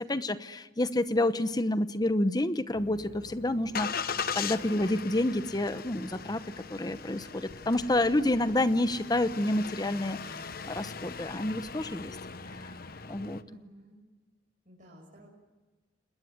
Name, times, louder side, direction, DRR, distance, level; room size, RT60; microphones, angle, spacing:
voice 1, 0.0-6.4 6.7-12.2 12.6-12.8 13.1-13.4, left 1 dB, 25° left, 12 dB, 0.9 m, -29 dB
Engine starting, 2.7-13.4, left 6 dB, 55° left, 1.1 m, -39 dB
voice 2, 13.4-14.0 14.6-15.3, equal, 45° right, -3 dB, 6.4 m, -53 dB
30.0 x 20.0 x 9.5 m, 1.2 s
head